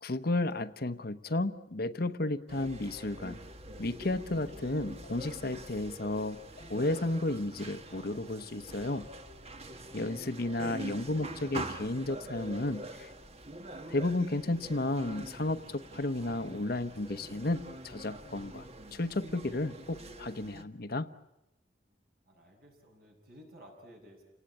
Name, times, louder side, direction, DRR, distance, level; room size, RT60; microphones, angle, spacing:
voice 1, 0.0-3.4 3.8-9.1 9.9-13.1 13.9-18.7 18.9-21.1, left 2 dB, 55° left, 11 dB, 1.0 m, -33 dB
sound 1, 2.5-20.6, right 2 dB, 35° right, 1.5 m, -45 dB
voice 2, 9.8-10.2 22.3-24.2, equal, 60° right, 2 dB, 7.0 m, -55 dB
29.5 x 18.5 x 8.7 m, 0.91 s
head